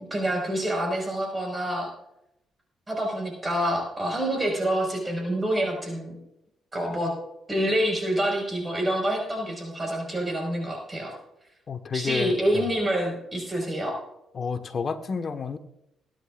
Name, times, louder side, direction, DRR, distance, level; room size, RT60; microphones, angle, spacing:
voice 1, 0.1-1.9 2.9-6.2 6.7-7.1 7.5-11.2 11.9-14.0, right 1 dB, 20° right, 1 dB, 5.4 m, -27 dB
voice 2, 11.7-12.6 14.3-15.6, left 5 dB, 45° left, 8 dB, 1.4 m, -30 dB
22.0 x 10.5 x 2.5 m, 0.83 s
cardioid pair, 90°, 0 cm